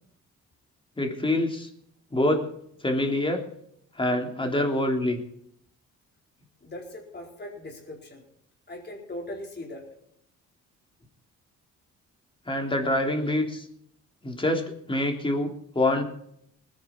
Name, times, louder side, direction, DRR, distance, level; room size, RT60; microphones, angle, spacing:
voice 1, 1.0-1.7 2.1-2.5 2.8-3.4 4.0-5.2 12.5-13.6 14.2-15.5 15.7-16.0, left 1 dB, 15° left, 3 dB, 3.3 m, -25 dB
voice 2, 6.6-8.2 8.7-9.9, left 1 dB, 35° left, 0 dB, 4.4 m, -39 dB
20.0 x 10.5 x 4.5 m, 0.70 s
cardioid pair, 90°, 30 cm